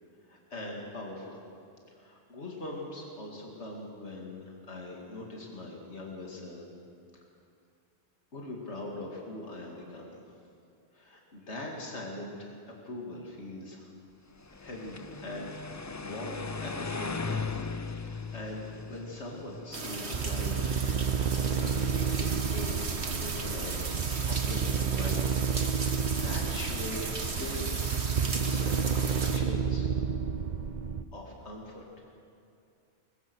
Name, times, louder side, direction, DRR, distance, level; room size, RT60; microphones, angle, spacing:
voice 1, 0.3-1.4 1.9-6.6 8.3-10.2 10.9-12.5 12.8-13.9 14.6-15.0 15.2-17.5 18.0-20.8 21.4-21.9 22.2-22.9 23.2-28.0 28.5-29.9 31.1-31.8, left 2 dB, 80° left, -1 dB, 2.7 m, -41 dB
sound 1, 14.4-20.5, left 4 dB, 25° left, 0.4 m, -38 dB
sound 2, 19.7-29.4, right 3 dB, 70° right, 2.0 m, -36 dB
sound 3, 20.1-31.0, right 7 dB, 45° right, 0.8 m, -30 dB
22.5 x 21.0 x 6.3 m, 2.5 s
omnidirectional pair, 1.1 m